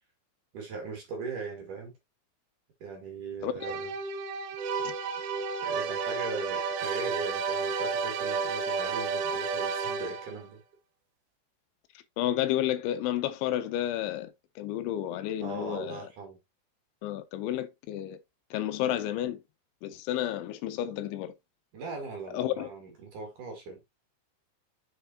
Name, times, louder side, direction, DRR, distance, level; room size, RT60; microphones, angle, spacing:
voice 1, 0.5-1.9 2.8-3.9 5.6-10.6 15.4-16.4 21.7-23.8, right 4 dB, 50° right, 2.9 m, -39 dB
voice 2, 3.4-3.8 4.8-4.9 12.2-16.0 17.0-18.2 18.5-19.4 19.8-21.3 22.3-22.7, left 12 dB, 80° left, 2.9 m, -31 dB
sound 1, 3.6-10.5, right 5 dB, 75° right, 2.8 m, -31 dB
7.2 x 6.5 x 2.9 m
omnidirectional pair, 5.6 m